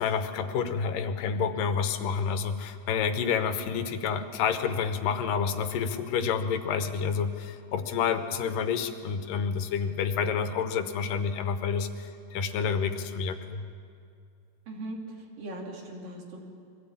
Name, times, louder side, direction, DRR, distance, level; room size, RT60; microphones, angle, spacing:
voice 1, 0.0-13.6, left 6 dB, 90° left, 9 dB, 2.7 m, -29 dB
voice 2, 14.7-16.4, right 1 dB, 85° right, -1 dB, 4.3 m, -39 dB
22.5 x 16.0 x 8.6 m, 2.3 s
omnidirectional pair, 3.8 m